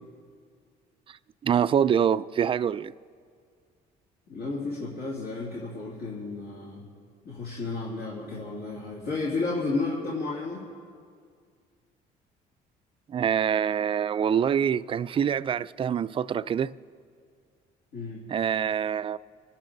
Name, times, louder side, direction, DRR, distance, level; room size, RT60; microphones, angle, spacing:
voice 1, 1.4-2.9 13.1-16.7 18.3-19.2, right 8 dB, 30° right, 0.4 m, -25 dB
voice 2, 4.3-6.9 7.2-10.6 17.9-18.2, left 3 dB, 70° left, 2.7 m, -32 dB
26.5 x 10.0 x 4.0 m
cardioid pair, 110°, 17 cm